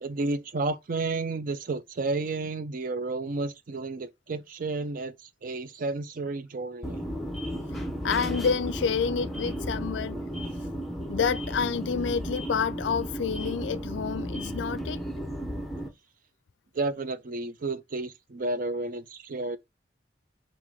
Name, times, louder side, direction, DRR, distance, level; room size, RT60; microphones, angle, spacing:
voice 1, 0.0-7.0 16.7-19.6, right 3 dB, 50° right, 0.5 m, -31 dB
sound 1, 6.8-15.9, equal, ahead, 0.8 m, -34 dB
voice 2, 7.7-10.2 11.1-15.0, left 6 dB, 80° left, 0.4 m, -29 dB
3.8 x 2.6 x 4.7 m
head